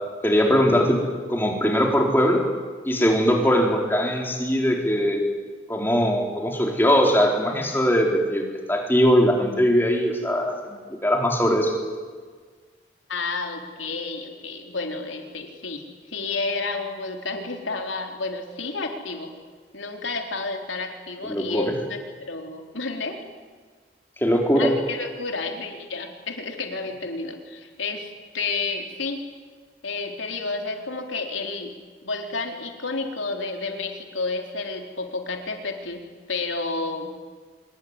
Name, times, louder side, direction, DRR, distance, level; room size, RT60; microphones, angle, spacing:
voice 1, 0.2-1.0 1.3-2.4 2.9-5.2 5.7-11.8 21.2-21.7 24.2-24.7, equal, 10° left, 1 dB, 4.1 m, -21 dB
voice 2, 13.1-15.8 16.1-19.3 19.7-23.2 24.5-29.2 29.8-31.7 32.0-36.0 36.3-37.1, left 3 dB, 85° left, 3 dB, 4.1 m, -31 dB
25.5 x 22.5 x 9.8 m, 1.5 s
head